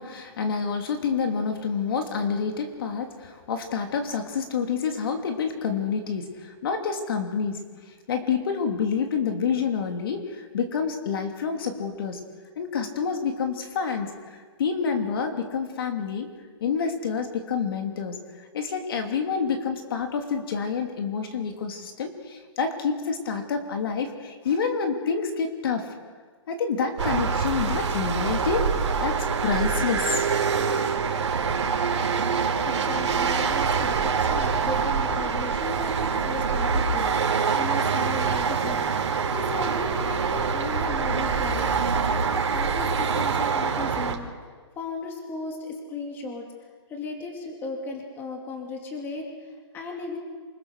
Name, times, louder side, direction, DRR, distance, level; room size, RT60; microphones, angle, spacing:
voice 1, 0.0-7.6 8.1-12.2 12.6-16.3 16.6-25.9 26.5-28.7 29.0-30.3, left 6 dB, 50° left, 4 dB, 3.0 m, -28 dB
sound 1, 27.0-44.1, right 5 dB, 75° right, 3.7 m, -25 dB
voice 2, 32.6-44.3 44.8-46.5 46.9-50.2, left 3 dB, 15° left, 1 dB, 2.7 m, -36 dB
28.0 x 20.5 x 6.7 m, 1.6 s
hypercardioid pair, 165°, 15 cm